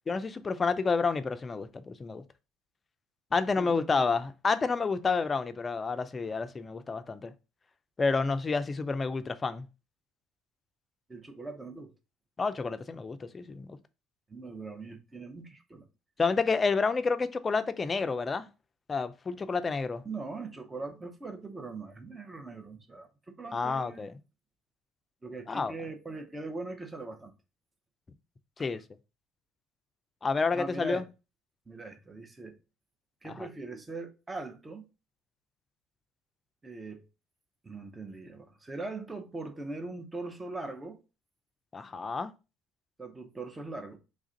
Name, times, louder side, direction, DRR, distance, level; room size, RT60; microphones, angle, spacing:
voice 1, 0.1-2.2 3.3-7.3 8.0-9.7 12.4-13.8 16.2-18.5 18.9-20.0 23.5-24.1 25.5-25.7 28.6-28.8 30.2-31.0 33.2-33.5 41.7-42.3, left 4 dB, 30° left, 0.4 m, -29 dB
voice 2, 3.6-4.0 11.1-11.9 14.3-15.8 20.0-24.1 25.2-27.3 30.5-31.1 31.7-32.6 33.2-34.9 36.6-37.1 37.6-41.0 43.0-44.0, right 3 dB, 20° right, 0.7 m, -41 dB
3.3 x 2.5 x 3.8 m
supercardioid pair, 75°, 0 cm